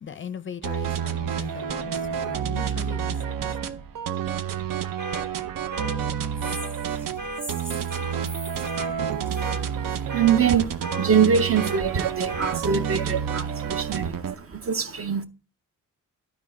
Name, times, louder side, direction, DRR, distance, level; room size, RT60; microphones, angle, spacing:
voice 1, 0.0-3.5, left 7 dB, 40° left, 0.4 m, -39 dB
sound 1, 0.6-14.3, right 8 dB, 85° right, 0.7 m, -29 dB
sound 2, 5.0-5.2 5.7-6.0 6.4-6.7 7.2-7.4 7.9-8.2 8.6-8.9 9.4-9.6 10.1-10.4 10.8-11.1 11.5-11.8 12.3-12.5, right 1 dB, 65° right, 2.1 m, -34 dB
sound 3, 6.4-10.2, equal, 5° right, 0.7 m, -42 dB
voice 2, 9.0-15.2, right 7 dB, 45° right, 0.7 m, -24 dB
12.0 x 4.3 x 4.2 m
wide cardioid pair, 155°, 33 cm